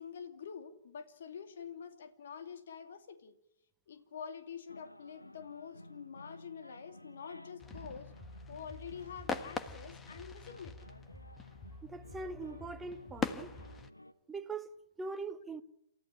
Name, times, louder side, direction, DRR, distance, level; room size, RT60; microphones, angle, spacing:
voice 1, 0.0-3.4 3.9-8.1 8.5-10.8, left 7 dB, 55° left, 2.7 m, -47 dB
sound 1, 4.7-14.1, left 1 dB, 90° left, 1.3 m, -55 dB
sound 2, 7.6-13.9, left 4 dB, 15° left, 1.4 m, -43 dB
voice 2, 11.8-13.5 14.3-15.6, right 3 dB, 10° right, 1.3 m, -42 dB
28.5 x 14.0 x 10.0 m
figure-of-eight pair, 120°, 0 cm